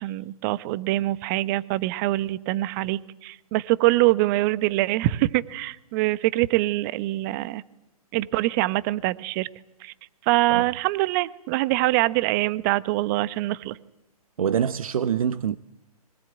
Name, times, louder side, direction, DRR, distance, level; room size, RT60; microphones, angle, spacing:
voice 1, 0.0-7.6 8.1-9.5 9.8-9.9 10.3-13.8, right 18 dB, 30° right, 0.9 m, -24 dB
voice 2, 14.4-15.6, right 8 dB, 65° right, 0.8 m, -25 dB
24.0 x 19.0 x 9.0 m
figure-of-eight pair, 130°, 20 cm